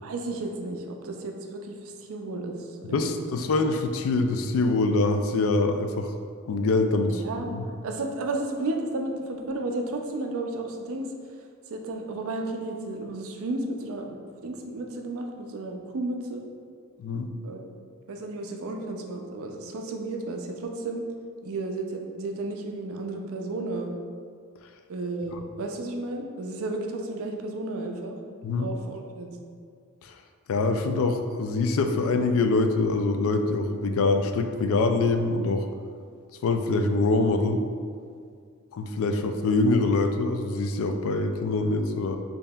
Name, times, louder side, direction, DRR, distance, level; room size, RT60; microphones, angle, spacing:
voice 1, 0.0-3.3 6.8-7.5 7.8-11.1 11.7-14.2 14.4-16.5 17.4-17.7 18.1-21.0 21.4-23.9 24.9-28.2 28.6-29.4, right 2 dB, 65° right, 3 dB, 0.4 m, -33 dB
voice 2, 2.9-6.1 6.5-7.2 7.5-7.7 17.0-17.3 25.3-25.4 28.4-28.7 30.0-30.1 30.5-35.7 36.4-37.6 38.7-42.2, left 3 dB, 65° left, 6 dB, 0.3 m, -24 dB
5.3 x 2.8 x 2.3 m, 2.1 s
head